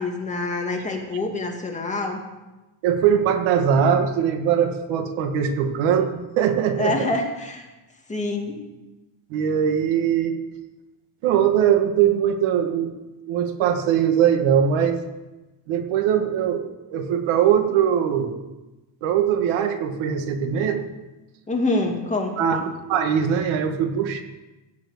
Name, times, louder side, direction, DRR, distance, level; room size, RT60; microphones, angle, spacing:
voice 1, 0.0-2.2 6.8-7.6 8.1-8.6 21.5-22.6, left 2 dB, 15° left, 1 dB, 2.3 m, -26 dB
voice 2, 2.8-7.1 9.3-10.4 11.2-12.9 13.3-15.0 15.7-18.4 19.0-20.8 22.4-24.2, right 8 dB, 80° right, 7 dB, 1.8 m, -21 dB
16.5 x 7.3 x 8.4 m, 1.1 s
cardioid pair, 145°, 47 cm